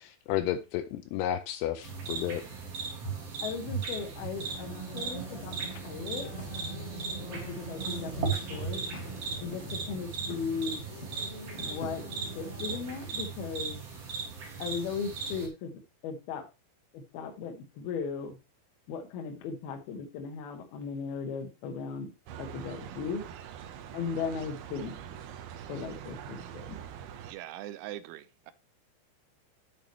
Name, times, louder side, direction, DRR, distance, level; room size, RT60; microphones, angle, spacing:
voice 1, 0.3-2.4, left 11 dB, 90° left, 2.3 m, -31 dB
sound 1, 1.8-15.5, right 5 dB, 45° right, 2.2 m, -37 dB
voice 2, 3.4-6.3 7.2-8.8 9.4-10.8 11.6-12.0 12.4-13.8 14.6-15.7 16.0-16.5 16.9-18.4 18.9-22.1 22.4-23.2 23.9-24.9 25.7-26.8, left 5 dB, 65° left, 2.9 m, -37 dB
sound 2, 4.2-13.1, right 1 dB, 35° left, 1.9 m, -43 dB
sound 3, 22.3-27.3, right 9 dB, 75° right, 2.6 m, -44 dB
voice 3, 27.2-28.5, right 13 dB, 90° right, 3.1 m, -42 dB
9.0 x 8.2 x 3.1 m
omnidirectional pair, 5.3 m